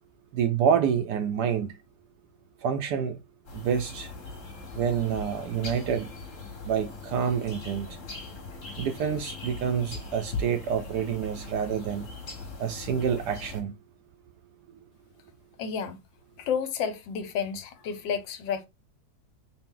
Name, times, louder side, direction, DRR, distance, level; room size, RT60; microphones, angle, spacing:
voice 1, 0.3-1.7 2.6-3.2 3.5-4.1 4.7-6.1 6.7-8.0 8.8-12.1 12.6-13.7, right 7 dB, 75° right, 1.0 m, -27 dB
sound 1, 3.5-13.6, left 3 dB, 45° left, 1.4 m, -40 dB
voice 2, 15.6-16.0 16.4-18.7, left 7 dB, 75° left, 1.3 m, -31 dB
4.1 x 2.1 x 3.7 m
omnidirectional pair, 2.1 m